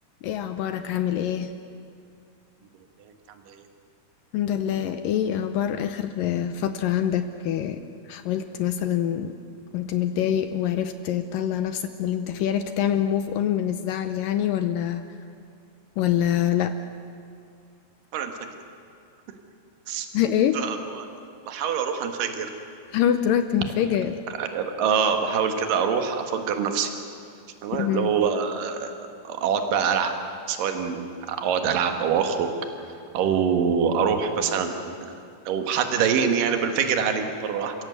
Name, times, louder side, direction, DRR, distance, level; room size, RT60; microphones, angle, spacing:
voice 1, 0.2-1.5 4.3-7.8 8.1-9.3 9.7-15.0 16.0-16.7 20.1-20.6 22.9-24.2 27.7-28.1, left 10 dB, 75° left, 9 dB, 2.2 m, -25 dB
voice 2, 3.0-3.7 18.1-18.3 19.9-20.1 20.5-21.1 21.5-22.5 24.4-26.9 27.6-28.9 29.2-30.1 30.5-32.5 33.1-35.1 35.5-37.7, right 7 dB, 65° right, 6 dB, 3.1 m, -25 dB
30.0 x 16.5 x 8.2 m, 2.3 s
omnidirectional pair, 4.5 m